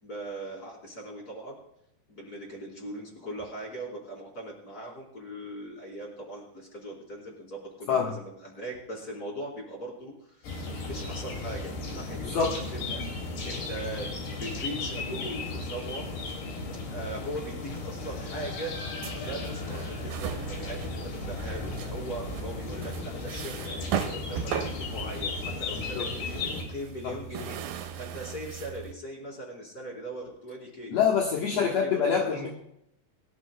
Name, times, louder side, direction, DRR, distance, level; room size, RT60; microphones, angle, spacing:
voice 1, 0.0-1.6 2.1-13.0 13.4-16.2 16.9-18.7 19.2-30.9 31.5-32.5, right 1 dB, 25° left, -2 dB, 4.3 m, -40 dB
sound 1, 10.4-26.7, left 3 dB, 85° left, 4.3 m, -35 dB
voice 2, 12.2-12.6 26.0-26.1 27.0-27.1 30.9-32.5, left 6 dB, 55° left, -1 dB, 2.0 m, -25 dB
sound 2, 19.0-28.9, right 9 dB, 75° right, 2.9 m, -38 dB
23.5 x 13.0 x 2.3 m, 0.76 s
omnidirectional pair, 4.6 m